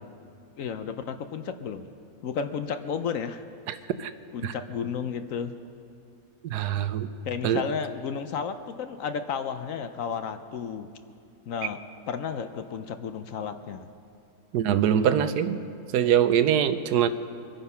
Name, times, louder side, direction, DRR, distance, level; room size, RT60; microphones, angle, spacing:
voice 1, 0.6-1.9 2.2-3.4 3.7-3.8 4.3-5.5 7.2-10.9 11.5-11.8 12.1-13.9, left 6 dB, 65° left, 9 dB, 0.9 m, -32 dB
voice 2, 6.4-7.1 7.4-7.6 14.5-15.6 15.9-17.1, right 9 dB, 85° right, 12 dB, 1.2 m, -23 dB
24.0 x 9.3 x 5.6 m, 2.5 s
omnidirectional pair, 1.7 m